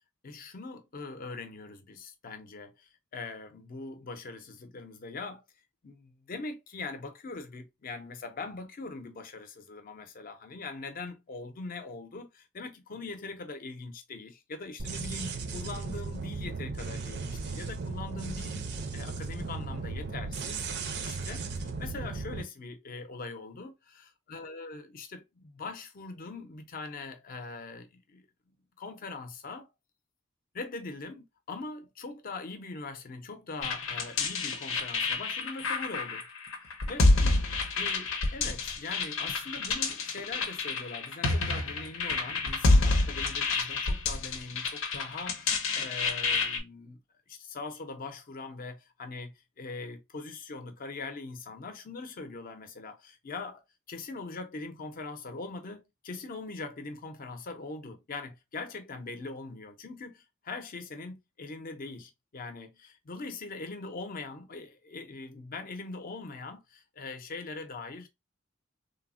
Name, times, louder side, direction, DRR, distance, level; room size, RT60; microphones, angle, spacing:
voice 1, 0.2-5.4 5.8-20.7 21.0-29.7 30.5-36.3 36.8-37.4 37.7-47.0 47.3-53.6 53.9-68.1, left 3 dB, 45° left, 0.5 m, -42 dB
sound 1, 14.8-22.4, right 4 dB, 55° right, 0.5 m, -36 dB
sound 2, 33.6-46.6, left 3 dB, 85° left, 0.6 m, -28 dB
3.3 x 2.0 x 2.4 m
head